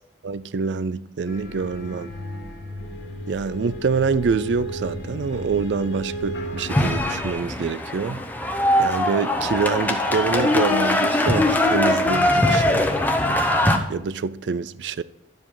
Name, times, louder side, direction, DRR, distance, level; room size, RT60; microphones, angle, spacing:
voice 1, 0.2-2.1 3.3-8.2 8.8-12.9 13.9-15.0, right 5 dB, 85° right, 0.4 m, -26 dB
sound 1, 1.3-7.3, equal, 85° left, 1.6 m, -34 dB
sound 2, 6.7-13.8, left 1 dB, 10° left, 0.9 m, -21 dB
10.5 x 7.5 x 3.8 m
head